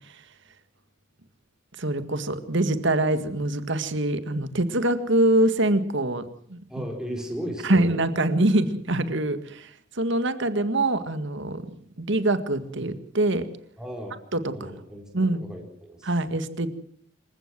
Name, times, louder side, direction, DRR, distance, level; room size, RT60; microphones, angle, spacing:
voice 1, 1.8-6.6 7.6-11.7 12.0-13.5 14.3-14.7 15.1-15.4 16.0-16.7, right 1 dB, 60° right, 11 dB, 1.9 m, -24 dB
voice 2, 6.7-7.9 13.8-14.2 14.5-16.1, equal, 5° right, 0 dB, 4.3 m, -36 dB
26.5 x 15.5 x 7.7 m, 0.65 s
head